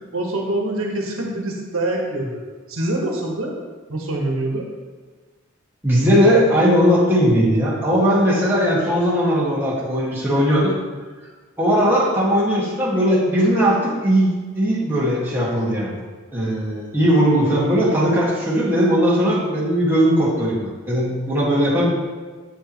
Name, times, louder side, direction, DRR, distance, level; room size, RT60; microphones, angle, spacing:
voice 1, 0.0-2.4 2.7-3.5 3.9-4.7, right 1 dB, 85° right, -1 dB, 1.4 m, -25 dB
voice 2, 5.8-10.7 11.6-16.0 16.3-21.9, equal, 10° right, -7 dB, 1.9 m, -18 dB
8.7 x 7.1 x 3.1 m, 1.4 s
head